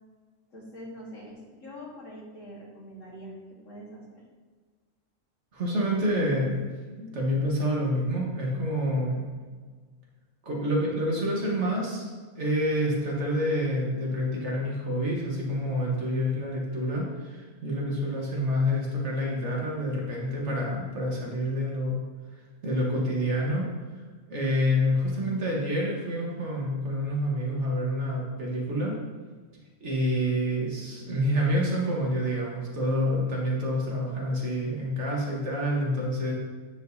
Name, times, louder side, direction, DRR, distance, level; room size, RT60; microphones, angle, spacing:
voice 1, 0.5-4.2, equal, 65° left, -4 dB, 1.9 m, -44 dB
voice 2, 5.5-6.7 7.0-9.3 10.4-12.1 12.3-22.0 22.6-23.7 23.9-24.0 24.3-28.9 29.8-36.3, equal, 55° right, -2 dB, 1.6 m, -28 dB
9.5 x 5.0 x 2.7 m, 1.5 s
omnidirectional pair, 1.4 m